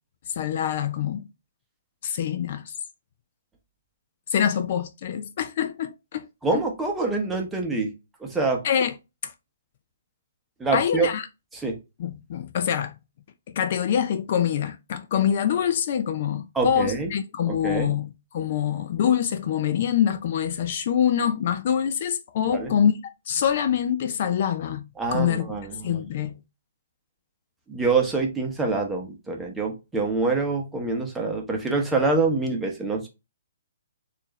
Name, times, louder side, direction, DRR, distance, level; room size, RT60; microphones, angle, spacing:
voice 1, 0.3-1.3 2.0-2.8 4.3-6.3 8.6-8.9 9.2-9.3 10.7-11.3 12.0-13.0 13.5-22.9 23.3-24.8 25.1-25.5 25.8-26.3, left 9 dB, 50° left, 0.4 m, -25 dB
voice 2, 6.4-7.9 8.2-8.6 10.6-11.1 11.5-11.8 16.5-17.1 17.5-18.0 22.5-22.7 25.0-26.0 27.7-33.1, right 3 dB, 10° right, 0.9 m, -25 dB
4.4 x 2.5 x 3.0 m
hypercardioid pair, 145°, 0 cm